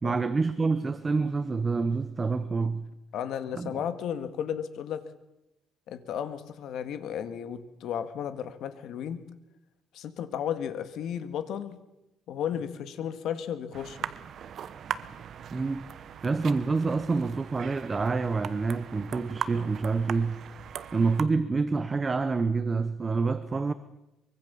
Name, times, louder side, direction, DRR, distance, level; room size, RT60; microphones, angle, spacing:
voice 1, 0.0-2.9 3.5-3.7 15.5-15.9 16.2-20.4 20.9-23.7, right 4 dB, 20° right, 0.9 m, -27 dB
voice 2, 3.1-5.1 5.9-9.2 9.9-11.8 12.3-14.1, left 9 dB, 65° left, 1.9 m, -34 dB
sound 1, 13.7-21.2, right 8 dB, 45° right, 1.0 m, -39 dB
24.0 x 23.5 x 7.1 m
cardioid pair, 160°, 0 cm